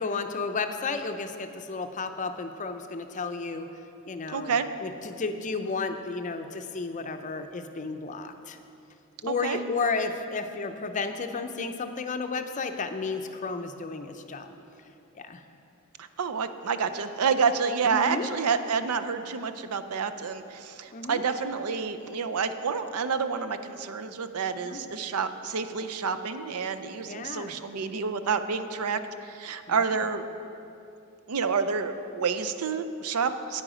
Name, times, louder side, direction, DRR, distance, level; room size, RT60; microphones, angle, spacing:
voice 1, 0.0-3.7 4.1-8.6 9.2-14.5 15.1-15.4 17.9-18.3 20.9-21.2 24.6-24.8 27.0-27.6 29.7-30.0, left 4 dB, 35° left, 7 dB, 0.5 m, -32 dB
voice 2, 4.3-4.7 9.3-9.6 16.0-30.2 31.3-33.6, right 5 dB, 80° right, 10 dB, 0.5 m, -29 dB
9.5 x 8.9 x 5.0 m, 2.7 s
head